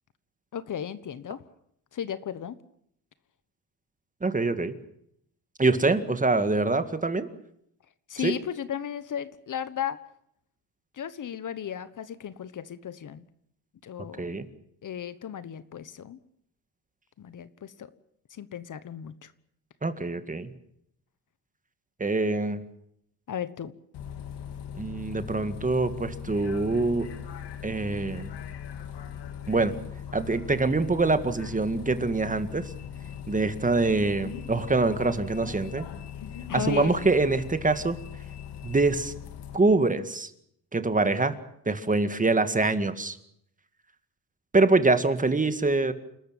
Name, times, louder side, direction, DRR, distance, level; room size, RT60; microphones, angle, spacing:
voice 1, 0.5-1.4 1.9-2.6 8.1-10.0 11.0-13.2 13.8-14.4 14.8-16.2 17.2-17.9 18.3-19.3 23.3-23.7 36.5-36.9, left 9 dB, 50° left, 15 dB, 1.3 m, -35 dB
voice 2, 4.2-4.7 5.6-7.3 8.2-8.3 14.2-14.5 19.8-20.5 22.0-22.6 24.7-27.1 27.6-28.3 29.5-29.7 30.1-32.6 33.3-35.9 36.5-38.0 38.6-39.1 39.5-40.3 40.7-41.3 41.7-43.2 44.5-45.9, right 3 dB, 20° right, 10 dB, 2.0 m, -24 dB
Bus, 23.9-39.6, left 8 dB, 75° left, 2.7 m, -40 dB
29.0 x 13.5 x 9.1 m, 0.72 s
cardioid pair, 120°, 41 cm